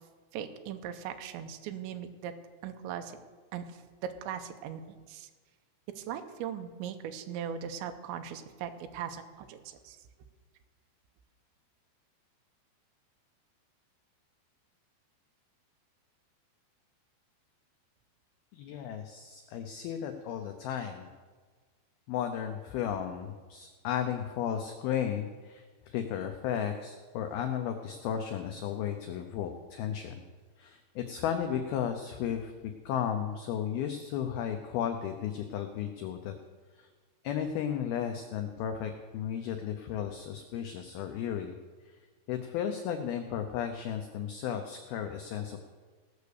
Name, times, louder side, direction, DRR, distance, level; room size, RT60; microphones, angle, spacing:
voice 1, 0.3-2.3 2.6-3.2 3.5-3.6 4.0-5.3 6.0-10.0, right 9 dB, 80° right, 7 dB, 3.1 m, -39 dB
voice 2, 18.5-21.1 22.1-30.2 30.6-32.5 32.9-36.3 36.8-36.9 37.2-41.6 41.8-41.9 42.3-45.7, left 9 dB, 85° left, 6 dB, 2.2 m, -34 dB
18.0 x 6.8 x 6.6 m, 1.4 s
omnidirectional pair, 5.4 m